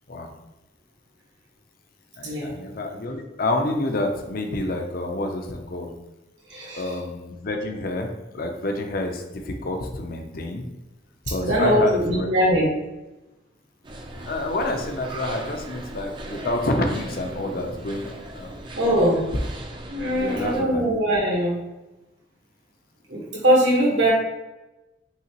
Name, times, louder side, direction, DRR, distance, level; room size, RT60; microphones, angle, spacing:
voice 1, 2.2-5.9 6.8-10.6 11.3-12.3 14.1-18.7 20.2-20.8, left 2 dB, 50° left, 4 dB, 0.6 m, -28 dB
voice 2, 6.5-6.8 11.4-12.7 18.7-19.2 19.9-21.6 23.1-24.1, equal, 80° right, -3 dB, 1.5 m, -21 dB
sound 1, 13.8-20.6, right 1 dB, 25° right, 0.5 m, -37 dB
5.6 x 2.9 x 3.0 m, 1.0 s
head